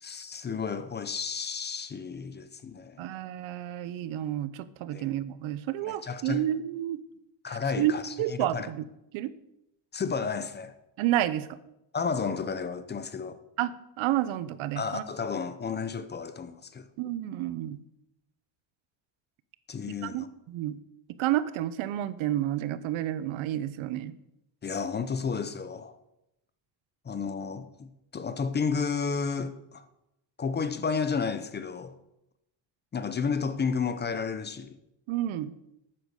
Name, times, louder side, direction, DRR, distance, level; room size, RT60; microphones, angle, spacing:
voice 1, 0.0-3.1 4.9-5.1 5.8-6.4 7.4-8.7 9.9-10.7 11.9-13.4 14.8-16.9 19.7-20.3 24.6-26.0 27.1-29.9 30.4-31.9 32.9-34.8, left 5 dB, 20° left, 0.6 m, -32 dB
voice 2, 3.0-7.0 7.8-7.9 8.2-8.9 9.1-9.3 11.0-11.5 13.6-15.0 17.0-17.8 20.0-20.8 21.2-24.1 35.1-35.5, right 13 dB, 90° right, 0.9 m, -30 dB
12.0 x 8.7 x 6.4 m
cardioid pair, 165°, 46 cm